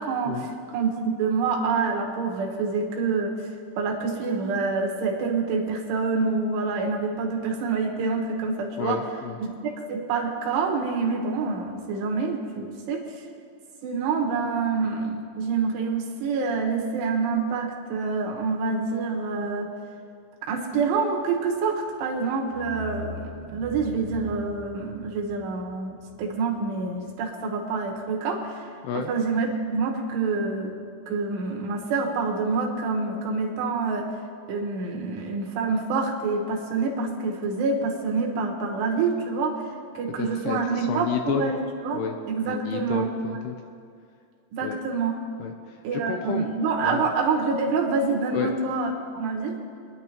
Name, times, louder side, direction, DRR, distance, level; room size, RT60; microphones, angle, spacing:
voice 1, 0.0-3.5 3.8-9.0 9.4-13.3 13.8-19.7 20.4-30.8 31.1-34.1 34.5-43.1 44.5-45.2 45.8-49.6, right 4 dB, 75° right, 1 dB, 3.4 m, -27 dB
voice 2, 8.8-9.4 28.8-29.1 40.2-41.5 41.9-42.1 42.4-43.5 44.6-44.8 45.4-46.5 46.8-47.1 48.3-48.5, left 6 dB, 80° left, 5 dB, 2.5 m, -31 dB
sound 1, 21.9-22.1 22.5-27.1, right 1 dB, 20° right, 1.6 m, -42 dB
26.0 x 10.5 x 3.0 m, 2.3 s
omnidirectional pair, 5.1 m